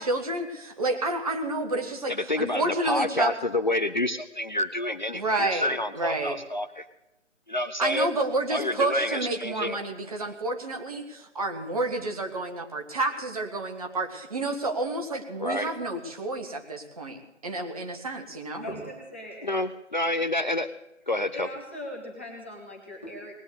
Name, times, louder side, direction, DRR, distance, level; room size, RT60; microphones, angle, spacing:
voice 1, 0.0-3.3 5.1-6.4 7.8-18.7, right 2 dB, 30° right, 4 dB, 1.6 m, -30 dB
voice 2, 2.1-6.9 7.5-8.1 8.5-9.8 15.4-15.7 19.4-20.7 21.1-21.5, left 1 dB, 40° left, 11 dB, 0.5 m, -28 dB
voice 3, 18.6-19.6 21.3-23.3, left 1 dB, 10° left, -2 dB, 0.9 m, -39 dB
19.0 x 8.7 x 8.2 m, 0.92 s
figure-of-eight pair, 150°, 36 cm